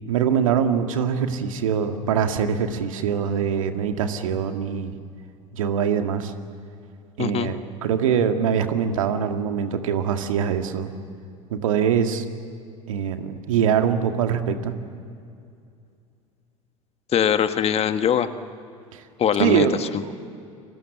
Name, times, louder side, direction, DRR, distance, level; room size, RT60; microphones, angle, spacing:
voice 1, 0.1-5.0 5.5-6.3 7.2-10.9 11.5-12.2 12.9-14.8 18.9-19.0 19.4-20.1, right 7 dB, 70° right, 7 dB, 1.9 m, -23 dB
voice 2, 7.2-7.5 17.1-18.3 19.2-19.7, left 9 dB, 35° left, 10 dB, 1.5 m, -21 dB
29.5 x 24.5 x 7.4 m, 2.4 s
figure-of-eight pair, 70°, 18 cm